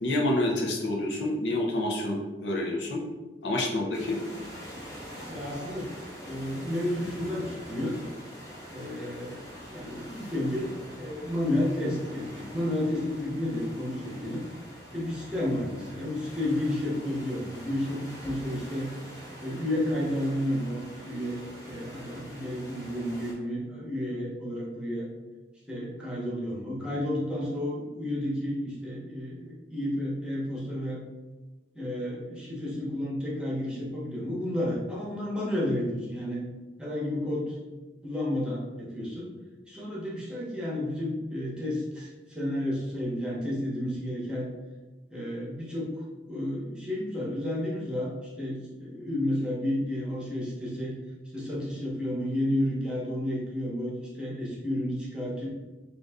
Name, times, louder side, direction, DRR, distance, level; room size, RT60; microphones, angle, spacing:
voice 1, 0.0-3.0 3.4-4.2, left 1 dB, 85° left, 0 dB, 0.7 m, -28 dB
sound 1, 3.9-23.3, equal, 20° left, 1.2 m, -45 dB
voice 2, 5.3-5.9 6.2-8.1 8.7-14.4 14.9-18.9 19.4-25.1 25.7-31.0 31.7-36.4 36.8-37.6 38.0-39.3 39.7-44.5 45.1-48.1 48.4-50.9 51.3-55.5, left 1 dB, 5° right, -6 dB, 1.0 m, -31 dB
3.9 x 2.5 x 3.5 m, 1.2 s
head